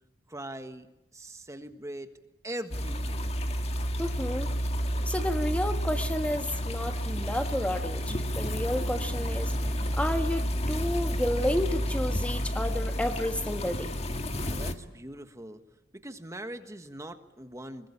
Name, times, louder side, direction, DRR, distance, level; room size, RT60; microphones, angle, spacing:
voice 1, 0.3-0.9 1.1-2.1 2.4-3.4 14.3-15.6 15.9-17.9, right 1 dB, 15° right, 7 dB, 1.5 m, -41 dB
sound 1, 2.7-14.7, equal, 35° left, 1.8 m, -30 dB
voice 2, 4.0-4.5 5.1-14.0, left 1 dB, 5° left, 6 dB, 1.5 m, -31 dB
25.5 x 22.5 x 10.0 m, 0.92 s
head